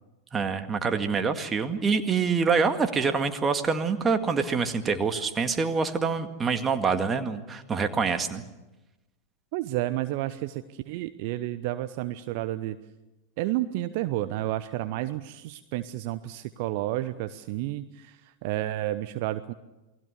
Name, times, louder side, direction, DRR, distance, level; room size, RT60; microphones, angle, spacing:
voice 1, 0.3-8.4, right 5 dB, 20° right, 7 dB, 2.0 m, -26 dB
voice 2, 9.5-12.8 13.4-19.5, right 15 dB, 45° right, 13 dB, 0.8 m, -31 dB
28.5 x 20.5 x 6.7 m, 1.0 s
figure-of-eight pair, 90°, 0 cm